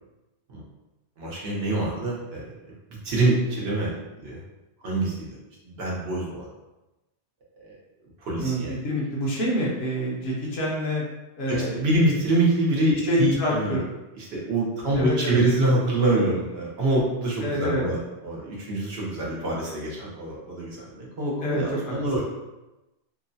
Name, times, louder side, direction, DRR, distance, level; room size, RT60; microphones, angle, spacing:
voice 1, 1.2-2.7 3.0-4.4 4.8-5.4 5.6-6.5 7.6-7.7 8.2-8.7 11.5-13.8 14.1-22.2, right 2 dB, 65° right, -4 dB, 1.0 m, -25 dB
voice 2, 8.3-11.0 11.4-11.8 13.0-13.8 15.0-15.4 17.4-17.8 21.4-21.9, equal, 65° left, -4 dB, 1.0 m, -26 dB
3.0 x 2.1 x 2.6 m, 1.0 s
omnidirectional pair, 1.2 m